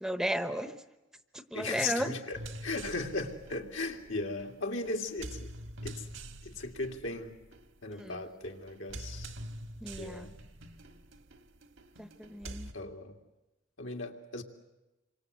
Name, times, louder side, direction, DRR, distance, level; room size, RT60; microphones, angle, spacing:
voice 1, 0.0-0.8 1.5-2.1 8.0-8.2 9.8-10.3 12.0-12.7, right 1 dB, 5° right, 9 dB, 0.9 m, -34 dB
voice 2, 1.5-5.5 5.8-6.0 6.4-7.3 7.8-9.3 10.0-10.3 12.4-13.1 13.8-14.4, left 3 dB, 75° left, 2 dB, 2.6 m, -37 dB
sound 1, 2.3-12.7, right 1 dB, 75° right, 1.6 m, -46 dB
27.5 x 24.5 x 8.2 m, 1.0 s
head